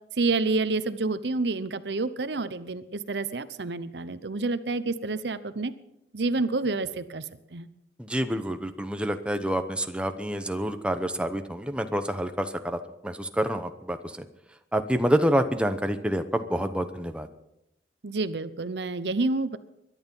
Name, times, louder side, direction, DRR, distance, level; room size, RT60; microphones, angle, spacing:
voice 1, 0.2-5.7 6.1-7.2 7.5-7.7 18.0-19.6, right 3 dB, 75° right, 13 dB, 0.8 m, -28 dB
voice 2, 8.0-14.2 14.7-17.3, equal, 5° right, 7 dB, 0.9 m, -27 dB
23.0 x 11.0 x 5.6 m, 0.82 s
head